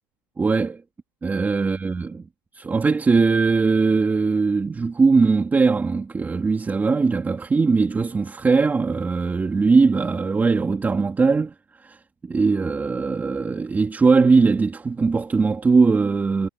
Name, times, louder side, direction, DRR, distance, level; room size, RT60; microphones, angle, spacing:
voice 1, 0.4-0.8 1.2-2.2 2.5-11.5 11.8-12.0 12.3-16.5, right 4 dB, 15° right, 3.2 m, -20 dB
supercardioid pair, 145°, 13 cm